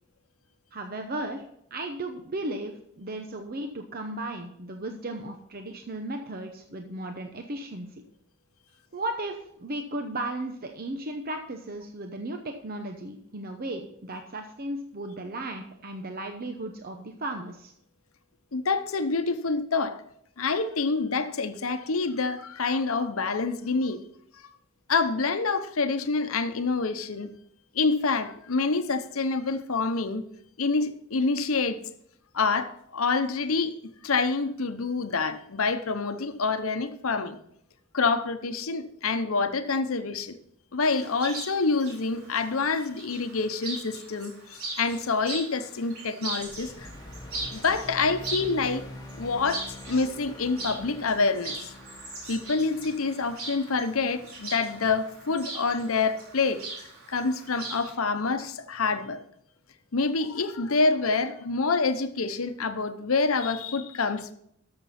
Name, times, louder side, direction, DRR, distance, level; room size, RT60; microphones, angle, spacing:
voice 1, 0.7-1.4 1.7-8.0 8.9-17.7, right 1 dB, 45° right, 5 dB, 0.8 m, -35 dB
voice 2, 18.5-20.0 20.4-24.0 24.9-27.3 27.7-30.2 30.6-31.8 32.3-33.7 34.0-37.4 37.9-40.4 40.7-46.9 47.5-48.8 49.1-51.7 52.3-56.6 57.1-59.2 59.9-64.3, left 4 dB, 80° left, 10 dB, 0.9 m, -27 dB
Chirp tweet, 40.8-57.9, right 2 dB, 85° right, 4.0 m, -40 dB
sound 1, 46.4-56.9, left 1 dB, 20° left, 1.1 m, -46 dB
13.0 x 6.8 x 4.3 m, 0.72 s
head